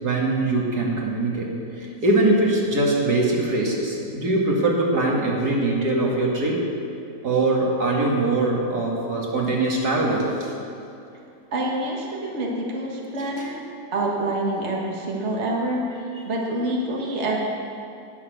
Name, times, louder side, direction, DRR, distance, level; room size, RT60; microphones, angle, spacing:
voice 1, 0.0-6.6 7.2-10.5 13.2-13.5, right 2 dB, 80° right, -2 dB, 2.6 m, -22 dB
voice 2, 11.5-17.4, right 1 dB, 45° right, -2 dB, 1.8 m, -27 dB
19.0 x 6.9 x 6.7 m, 2.6 s
omnidirectional pair, 1.7 m